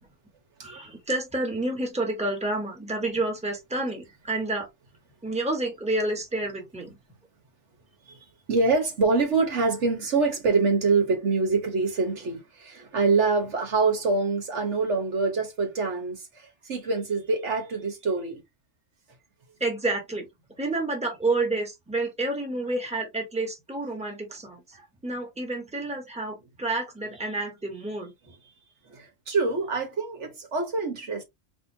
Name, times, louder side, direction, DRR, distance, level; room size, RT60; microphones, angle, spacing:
voice 1, 0.6-4.7 5.2-7.0 19.6-20.2 20.5-28.1, right 2 dB, 5° right, 1.4 m, -29 dB
voice 2, 8.0-18.4 28.9-31.2, right 4 dB, 65° right, 1.5 m, -25 dB
4.2 x 3.4 x 2.7 m
omnidirectional pair, 1.3 m